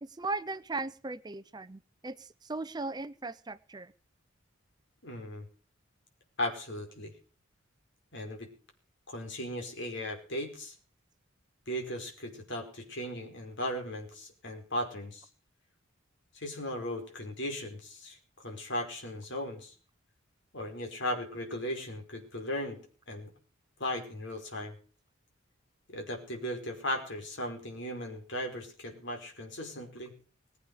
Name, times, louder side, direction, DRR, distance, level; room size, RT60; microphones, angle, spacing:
voice 1, 0.0-3.9, right 3 dB, 20° right, 14 dB, 0.6 m, -38 dB
voice 2, 5.0-5.5 6.4-7.1 8.1-8.5 9.1-10.7 11.7-15.3 16.3-19.7 20.5-22.8 23.1-23.3 23.8-24.7 25.9-30.1, left 1 dB, 60° left, 4 dB, 5.4 m, -37 dB
21.0 x 8.5 x 6.4 m, 0.41 s
head